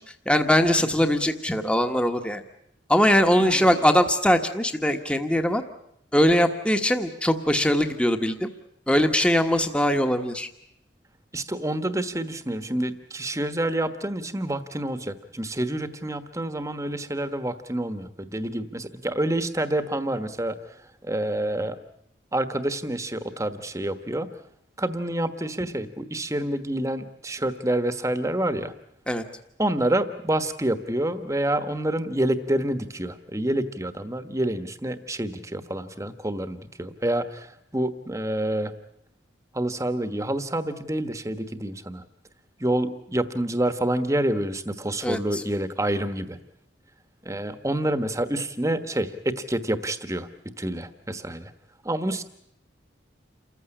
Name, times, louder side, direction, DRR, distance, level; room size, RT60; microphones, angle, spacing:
voice 1, 0.2-2.4 2.9-5.6 6.1-8.5 8.9-10.5 29.1-29.2 45.0-45.4, equal, 5° left, 6 dB, 1.3 m, -21 dB
voice 2, 3.4-3.7 11.3-21.8 22.3-24.3 24.8-28.7 29.6-38.7 39.5-42.0 42.6-46.4 47.2-50.3 50.6-51.5 51.8-52.2, right 1 dB, 15° right, 10 dB, 1.3 m, -28 dB
28.5 x 15.0 x 10.0 m, 0.77 s
head